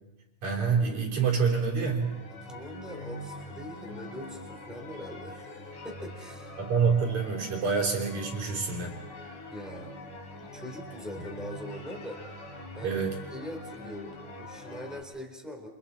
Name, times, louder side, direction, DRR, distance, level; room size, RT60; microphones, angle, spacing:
voice 1, 0.4-2.1 6.6-9.5 12.8-13.2, right 5 dB, 50° right, 0 dB, 5.1 m, -27 dB
sound 1, 1.9-15.0, left 1 dB, 55° left, 6.2 m, -43 dB
voice 2, 2.4-6.5 9.5-9.9 10.4-12.2 12.7-13.0 13.3-15.7, equal, ahead, 2 dB, 3.5 m, -42 dB
30.0 x 27.0 x 4.4 m, 1.1 s
omnidirectional pair, 4.2 m